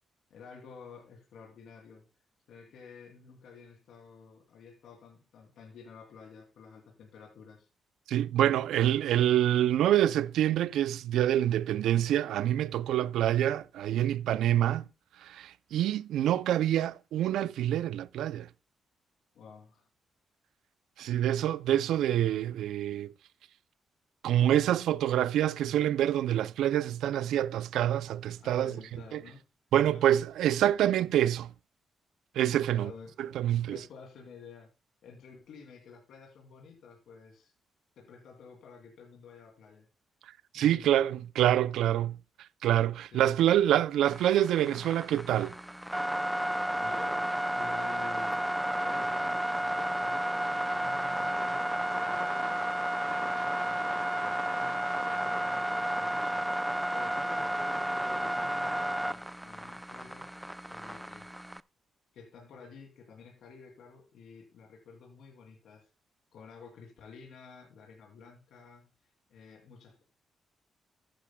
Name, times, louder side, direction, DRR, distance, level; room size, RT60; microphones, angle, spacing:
voice 1, 0.3-2.1 2.5-7.7 19.3-19.9 28.4-29.4 29.8-30.0 32.7-33.3 33.6-34.7 35.0-37.5 38.0-39.9 40.5-41.0 43.1-43.4 46.5-48.4 48.8-52.6 52.9-60.3 60.6-61.3 62.1-65.9 66.3-68.9 69.3-70.0, left 5 dB, 80° left, 2.7 m, -51 dB
voice 2, 8.1-14.9 15.2-18.5 21.0-23.1 24.2-29.2 29.7-31.5 32.4-32.9 33.2-33.8 40.5-42.2 42.6-45.5, right 12 dB, 90° right, 0.4 m, -26 dB
sound 1, 44.0-61.6, right 1 dB, 5° right, 0.4 m, -32 dB
14.0 x 10.0 x 2.2 m
cardioid pair, 70°, 0 cm